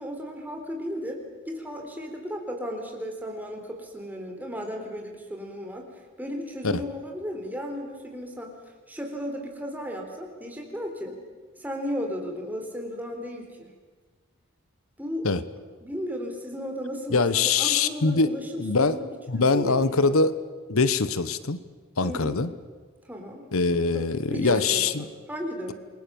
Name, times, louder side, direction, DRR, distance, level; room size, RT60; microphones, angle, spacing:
voice 1, 0.0-5.8 6.2-8.5 8.9-11.2 11.6-13.7 15.0-15.3 15.8-19.1 19.3-20.1 22.0-22.4 23.1-23.4 23.9-25.7, equal, 10° right, 2 dB, 3.7 m, -35 dB
voice 2, 17.1-18.3 18.6-19.0 19.3-20.4 20.7-21.6 22.0-22.5 23.5-25.1, left 4 dB, 85° left, 14 dB, 1.1 m, -23 dB
28.0 x 22.0 x 7.1 m, 1.4 s
head